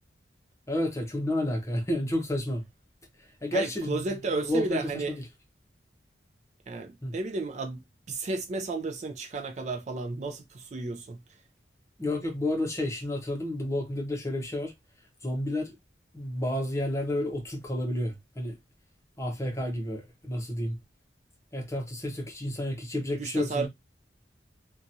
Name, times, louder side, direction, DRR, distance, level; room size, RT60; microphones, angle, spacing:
voice 1, 0.7-2.6 3.2-4.0 4.4-5.2 7.0-7.1 12.0-14.7 15.2-15.8 16.1-18.5 19.2-20.8 21.5-23.7, left 1 dB, 15° left, 0.8 m, -30 dB
voice 2, 3.5-5.1 6.7-11.2 23.2-23.7, right 3 dB, 40° right, 0.3 m, -33 dB
2.8 x 2.3 x 2.6 m
head